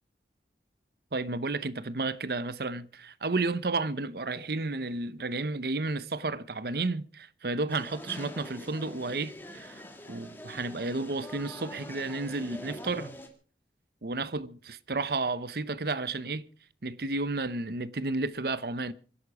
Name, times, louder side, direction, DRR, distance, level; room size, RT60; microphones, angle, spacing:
voice 1, 1.1-9.8 10.1-13.2 14.0-16.4 16.8-18.9, right 3 dB, 60° right, 0.8 m, -32 dB
sound 1, 7.7-13.3, left 1 dB, 10° left, 2.2 m, -44 dB
24.5 x 11.0 x 4.8 m
head